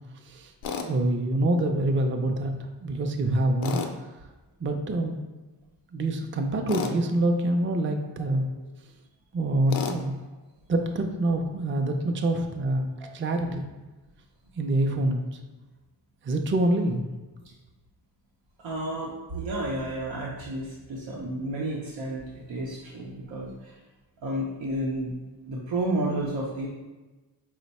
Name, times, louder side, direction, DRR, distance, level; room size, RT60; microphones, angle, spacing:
Tools, 0.6-0.9 3.6-3.9 6.7-7.0 9.7-10.0, left 5 dB, 90° left, 0.5 m, -30 dB
voice 1, 0.9-3.8 4.6-5.2 5.9-8.5 9.3-10.1 10.7-12.9 13.1-13.7 14.6-15.2 16.2-17.1, right 1 dB, 30° right, 4 dB, 0.4 m, -26 dB
voice 2, 18.6-23.7 24.2-25.2 25.5-26.7, right 1 dB, 90° right, -5 dB, 0.7 m, -31 dB
4.4 x 2.1 x 4.0 m, 1.2 s
cardioid pair, 70°, 45 cm